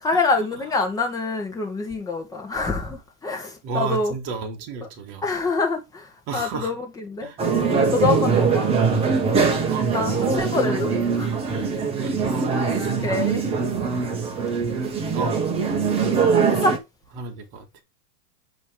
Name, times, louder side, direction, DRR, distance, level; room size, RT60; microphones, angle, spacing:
voice 1, 0.0-4.1 5.2-8.7 9.9-11.3 13.0-13.4 16.0-16.2 16.5-16.8, left 3 dB, 5° left, 1.3 m, -26 dB
voice 2, 3.6-5.3 6.3-6.7 7.2-7.4 8.3-9.0 9.5-10.4 12.0-12.5 12.7-12.9 13.8-15.4 17.2-17.7, right 4 dB, 35° right, 1.8 m, -34 dB
sound 1, 7.4-16.8, right 5 dB, 10° right, 1.2 m, -22 dB
9.1 x 3.3 x 4.9 m
supercardioid pair, 155°, 48 cm